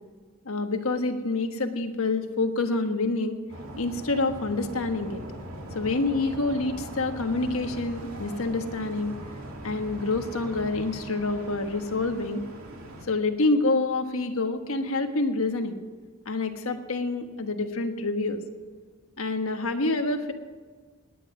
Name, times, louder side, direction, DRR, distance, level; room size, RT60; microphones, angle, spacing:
voice 1, 0.4-3.4 3.8-5.2 5.7-9.1 9.6-12.4 13.1-15.8 16.2-18.4 19.2-20.3, left 3 dB, 75° left, 6 dB, 1.4 m, -27 dB
sound 1, 3.5-13.1, right 1 dB, 85° right, 2.3 m, -40 dB
19.0 x 10.0 x 6.0 m, 1.5 s
head